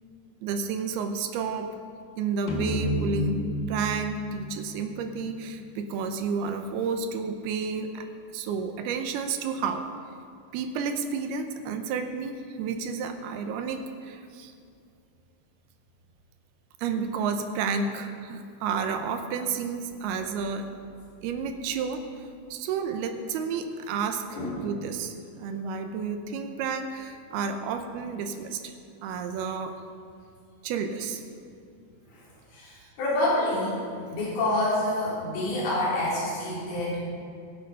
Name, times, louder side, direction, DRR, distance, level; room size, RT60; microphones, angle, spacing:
voice 1, 0.4-1.8 2.2-3.4 3.7-8.1 8.3-9.9 10.5-14.5 16.8-20.7 21.2-22.3 22.5-28.7 29.0-29.8 30.6-31.2, right 5 dB, 80° right, 6 dB, 2.6 m, -31 dB
sound 1, 2.5-6.0, equal, 80° left, 3.6 m, -32 dB
voice 2, 32.5-33.8 34.1-37.0, left 1 dB, 65° left, -8 dB, 5.3 m, -27 dB
21.5 x 8.0 x 5.5 m, 2.4 s
omnidirectional pair, 5.0 m